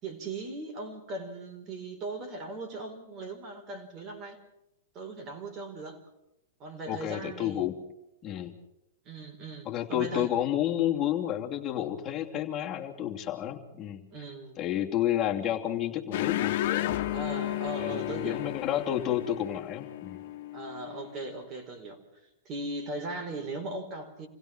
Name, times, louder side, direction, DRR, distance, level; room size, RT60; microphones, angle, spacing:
voice 1, 0.0-4.4 4.9-6.0 6.6-7.7 9.0-10.3 14.1-14.6 17.1-18.4 20.5-22.0 22.4-24.3, right 2 dB, 35° right, 4 dB, 4.7 m, -38 dB
voice 2, 6.9-7.8 8.2-8.5 9.6-14.0 14.6-17.0 17.8-20.2, left 11 dB, 25° left, 0 dB, 2.8 m, -30 dB
sound 1, 16.1-21.1, left 14 dB, 55° left, 1.7 m, -33 dB
27.5 x 16.5 x 6.2 m, 0.85 s
hypercardioid pair, 130°, 0 cm